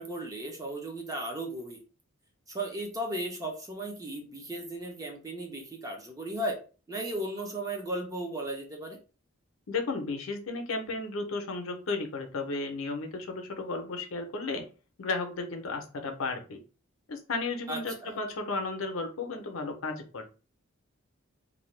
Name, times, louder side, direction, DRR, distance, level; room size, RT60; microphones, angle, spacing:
voice 1, 0.0-1.8 2.5-6.6 6.9-9.0 17.7-18.2, right 1 dB, 15° right, 1 dB, 0.6 m, -36 dB
voice 2, 9.7-14.6 15.0-16.6 17.1-20.2, left 3 dB, 75° left, 5 dB, 0.6 m, -34 dB
2.6 x 2.2 x 3.1 m, 0.34 s
head